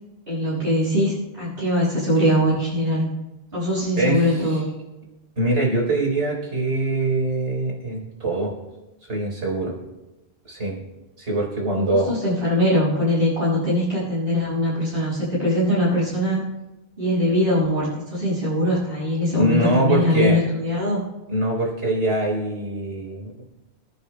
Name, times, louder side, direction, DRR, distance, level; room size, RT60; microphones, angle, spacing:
voice 1, 0.3-3.1 3.5-4.7 11.7-16.5 17.0-21.0, left 1 dB, 60° right, -8 dB, 6.0 m, -22 dB
voice 2, 4.0-4.4 5.4-8.5 9.1-9.7 10.5-10.8 11.2-12.2 19.4-20.4 21.3-23.3, right 1 dB, 90° right, -1 dB, 4.4 m, -23 dB
29.5 x 10.5 x 2.2 m, 1.0 s
omnidirectional pair, 1.1 m